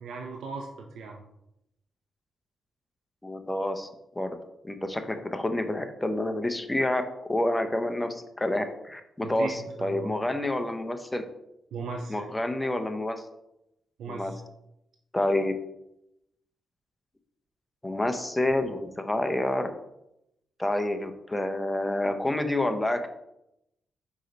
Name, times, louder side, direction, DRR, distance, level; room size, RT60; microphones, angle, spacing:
voice 1, 0.0-1.2 9.2-10.1 11.7-12.2 14.0-14.4, right 4 dB, 85° right, 2 dB, 0.6 m, -37 dB
voice 2, 3.2-3.9 4.2-4.3 4.6-11.2 12.1-13.2 14.1-14.3 15.1-15.5 17.8-19.7 20.6-23.1, left 1 dB, 10° left, 7 dB, 0.7 m, -28 dB
5.3 x 4.8 x 4.0 m, 0.84 s
cardioid pair, 105°, 0 cm